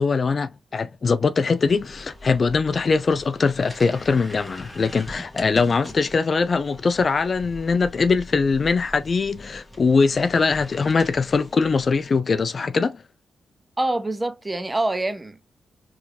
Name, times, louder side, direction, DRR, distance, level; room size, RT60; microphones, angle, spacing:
voice 1, 0.0-13.0, left 4 dB, 50° left, 0.4 m, -22 dB
sound 1, 1.7-12.2, left 1 dB, 10° left, 1.6 m, -42 dB
voice 2, 13.8-15.5, right 2 dB, 20° right, 0.7 m, -25 dB
4.6 x 3.2 x 2.6 m
cardioid pair, 55°, 0 cm